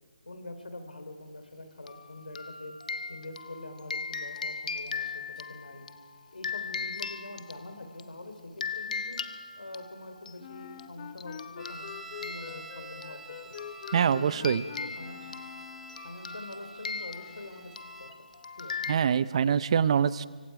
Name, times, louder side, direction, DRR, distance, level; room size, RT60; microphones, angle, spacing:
voice 1, 0.3-2.7 3.1-5.9 6.3-9.2 9.6-11.9 12.2-13.6 14.0-15.3 16.0-17.7 18.0-18.1 18.6-18.8, left 2 dB, 85° left, 7 dB, 3.9 m, -44 dB
sound 1, 1.9-8.1 8.6-10.3 10.8-10.9 11.2-18.9, left 5 dB, 60° left, 1.0 m, -39 dB
Wind instrument woodwind instrument, 10.4-16.1, left 9 dB, 35° left, 0.8 m, -45 dB
sound 2, 11.6-18.2, right 4 dB, 5° right, 0.7 m, -49 dB
voice 2, 13.9-14.6 18.9-20.2, right 7 dB, 40° right, 17 dB, 0.6 m, -24 dB
25.0 x 24.0 x 4.9 m, 1.5 s
figure-of-eight pair, 150°, 5 cm